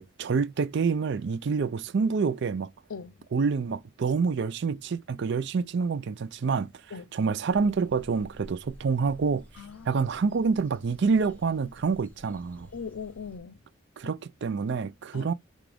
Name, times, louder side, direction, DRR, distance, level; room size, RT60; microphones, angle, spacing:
voice 1, 0.0-2.7 3.3-6.7 7.1-9.4 9.9-12.7 14.0-15.3, right 5 dB, 55° right, 0.4 m, -27 dB
voice 2, 2.9-3.3 6.9-7.1 9.6-10.0 12.7-13.6 14.0-14.1 15.1-15.3, left 6 dB, 75° left, 0.6 m, -40 dB
sound 1, 7.5-13.4, equal, 10° left, 1.3 m, -52 dB
6.0 x 2.4 x 3.4 m
head